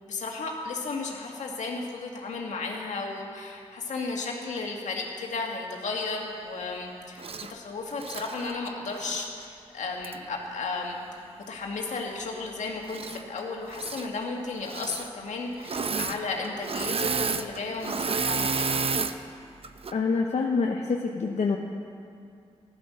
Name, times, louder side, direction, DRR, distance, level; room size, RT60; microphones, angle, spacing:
voice 1, 0.0-7.2 7.5-18.8, left 3 dB, 80° left, 0 dB, 2.0 m, -34 dB
Engine / Mechanisms, 7.2-7.5 7.9-9.3 10.0-10.2 12.8-13.4 13.7-14.1 14.6-15.1 15.6-16.2 16.4-19.2 19.6-19.9, right 4 dB, 55° right, 0.7 m, -30 dB
voice 2, 19.9-21.6, left 4 dB, 65° left, 1 dB, 0.9 m, -26 dB
14.5 x 11.0 x 6.5 m, 2.5 s
cardioid pair, 55°, 12 cm